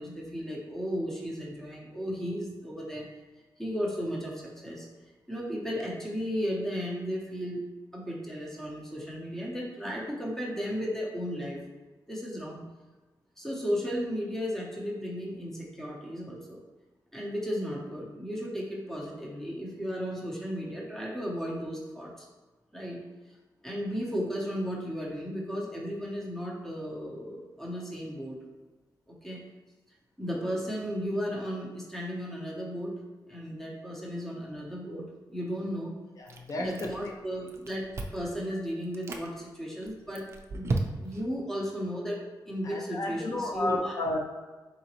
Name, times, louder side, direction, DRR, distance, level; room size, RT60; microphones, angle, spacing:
voice 1, 0.0-3.1 3.6-4.9 5.3-7.6 7.9-11.6 12.1-12.6 13.4-16.6 17.1-22.3 22.7-23.0 23.6-28.4 29.1-29.4 30.2-33.0 33.3-36.0 36.6-40.3 40.5-40.7 41.0-44.0, equal, 5° left, -3 dB, 0.7 m, -35 dB
voice 2, 36.2-36.9 42.6-44.2, left 2 dB, 45° left, 0 dB, 0.4 m, -32 dB
Chewing mastication, 36.3-37.2 37.5-38.3 38.8-39.3 39.8-41.3, right 3 dB, 35° right, 0.4 m, -34 dB
3.9 x 3.7 x 2.9 m, 1.2 s
wide cardioid pair, 175°, 8 cm